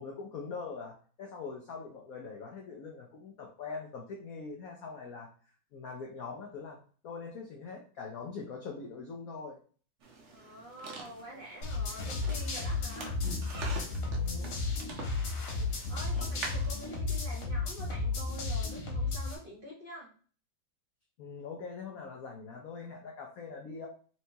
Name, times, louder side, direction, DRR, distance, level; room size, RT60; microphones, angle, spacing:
voice 1, 0.0-5.3 5.7-6.8 7.0-9.6 14.1-14.5 21.2-23.9, left 4 dB, 70° left, 0 dB, 0.8 m, -42 dB
sound 1, 10.0-17.0, right 3 dB, 60° right, 0.7 m, -46 dB
voice 2, 10.3-13.2 15.3-20.1, equal, 35° right, -4 dB, 1.0 m, -47 dB
sound 2, 11.6-19.4, left 3 dB, 90° left, 2.2 m, -33 dB
4.4 x 3.3 x 2.8 m, 0.42 s
omnidirectional pair, 2.3 m